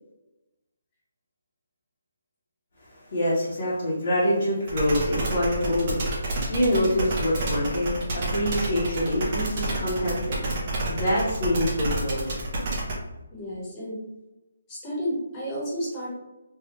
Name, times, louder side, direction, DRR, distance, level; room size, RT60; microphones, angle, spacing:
voice 1, 3.1-10.4 10.9-12.2, equal, 45° left, -8 dB, 0.9 m, -25 dB
sound 1, 4.7-12.9, right 2 dB, 30° right, 0.7 m, -29 dB
voice 2, 13.3-14.0 14.7-16.1, equal, 15° left, -6 dB, 1.0 m, -32 dB
3.4 x 2.3 x 3.0 m, 0.99 s
hypercardioid pair, 180°, 0 cm